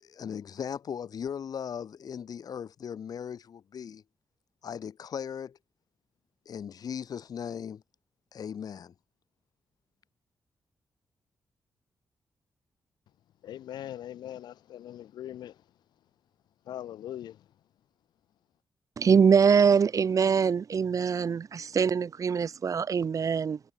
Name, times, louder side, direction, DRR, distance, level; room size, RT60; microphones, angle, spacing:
voice 1, 0.0-4.0 4.6-5.6 6.5-7.8 8.3-8.9, left 8 dB, 65° left, 1.0 m, -38 dB
voice 2, 13.4-15.6 16.7-17.4, left 11 dB, 90° left, 0.7 m, -41 dB
voice 3, 19.0-23.6, right 6 dB, 50° right, 0.8 m, -23 dB
cardioid pair, 75°, 7 cm